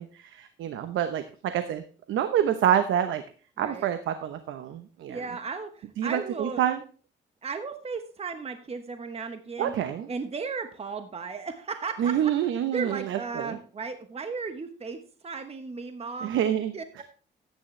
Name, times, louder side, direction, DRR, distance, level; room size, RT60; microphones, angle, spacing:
voice 1, 0.0-1.8 2.1-3.2 3.6-5.2 6.0-6.8 9.6-10.1 12.0-13.6 16.2-16.7, right 10 dB, 80° right, 9 dB, 0.9 m, -27 dB
voice 2, 3.6-3.9 5.1-6.6 7.4-9.7 10.1-12.3 12.7-17.0, right 4 dB, 30° right, 8 dB, 1.1 m, -35 dB
14.0 x 9.4 x 3.3 m, 0.40 s
cardioid pair, 90°, 20 cm